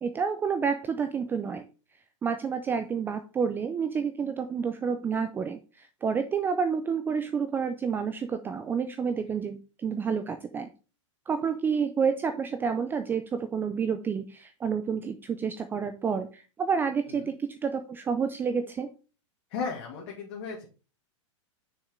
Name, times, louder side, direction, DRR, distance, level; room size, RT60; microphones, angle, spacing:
voice 1, 0.0-1.6 2.2-10.7 11.3-18.9, right 6 dB, 10° right, 9 dB, 0.4 m, -29 dB
voice 2, 19.5-20.7, left 5 dB, 50° left, -2 dB, 2.0 m, -35 dB
6.4 x 6.3 x 3.7 m, 0.33 s
supercardioid pair, 145°, 16 cm